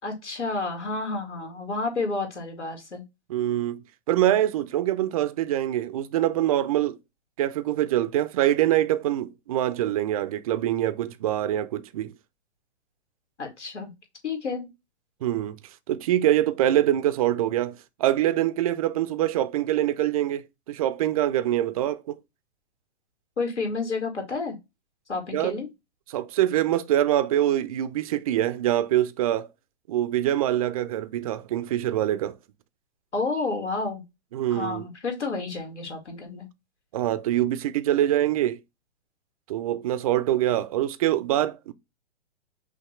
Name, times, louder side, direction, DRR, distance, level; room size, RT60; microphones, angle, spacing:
voice 1, 0.0-3.0 13.4-13.9 14.2-14.7 23.4-24.6 25.1-25.7 33.1-34.0 34.5-36.5, left 3 dB, 85° left, 2.4 m, -30 dB
voice 2, 3.3-7.0 7.4-12.1 15.2-15.6 15.9-22.2 25.3-25.6 26.1-29.5 29.9-32.4 34.3-34.9 36.9-38.6 39.5-41.7, right 12 dB, 35° right, 0.4 m, -24 dB
5.7 x 2.8 x 3.0 m
hypercardioid pair, 130°, 34 cm